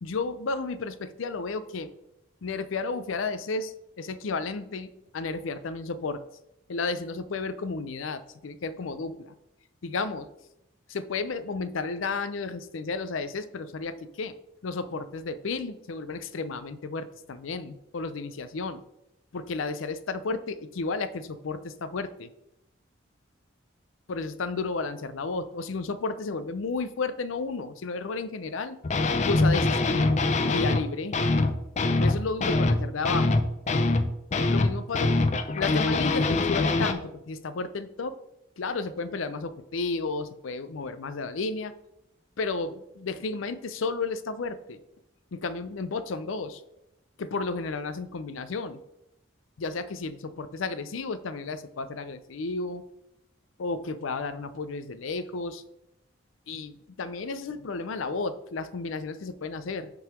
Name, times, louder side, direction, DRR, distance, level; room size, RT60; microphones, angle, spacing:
voice 1, 0.0-1.9 2.4-6.2 6.7-9.3 9.8-10.3 10.9-14.4 14.6-18.8 19.3-22.3 24.1-28.8 29.2-30.2 30.5-31.2 32.0-33.4 34.5-35.1 35.5-38.2 38.6-41.7 42.4-44.8 45.3-46.6 47.2-48.8 49.6-52.8 53.6-55.6 56.5-59.9, left 4 dB, 85° left, 13 dB, 0.5 m, -32 dB
sound 1, 28.8-30.8 31.1-36.9, left 2 dB, 35° left, 0.4 m, -24 dB
5.8 x 3.8 x 6.0 m, 0.84 s
head